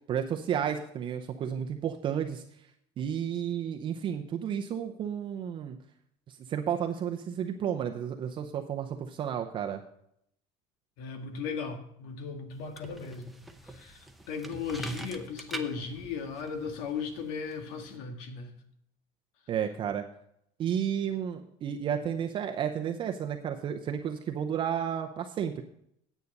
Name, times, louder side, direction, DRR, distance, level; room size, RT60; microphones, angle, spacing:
voice 1, 0.1-2.4 3.0-5.8 6.3-9.8 19.5-20.0 20.6-25.6, right 8 dB, 35° right, 4 dB, 0.7 m, -32 dB
voice 2, 11.0-13.3 13.6-18.5, left 5 dB, 80° left, 6 dB, 1.7 m, -37 dB
sound 1, 12.5-18.0, right 1 dB, ahead, 0.7 m, -45 dB
9.6 x 8.2 x 5.3 m, 0.72 s
cardioid pair, 155°, 14 cm